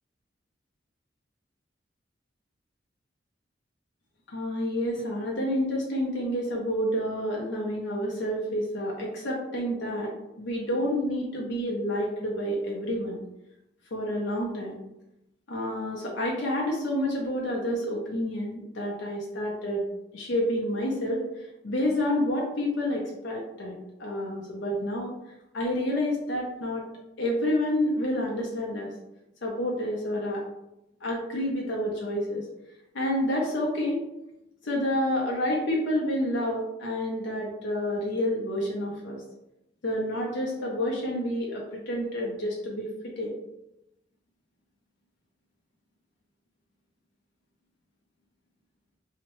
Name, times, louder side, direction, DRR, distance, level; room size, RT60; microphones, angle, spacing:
voice 1, 4.3-10.1 10.4-13.2 13.9-14.8 15.5-19.8 20.1-25.1 25.5-26.8 27.2-28.9 29.4-30.4 31.0-32.5 32.9-34.0 34.6-39.2 39.8-42.9 43.2-43.3, left 1 dB, 75° left, -2 dB, 0.5 m, -29 dB
2.7 x 2.1 x 2.9 m, 0.90 s
head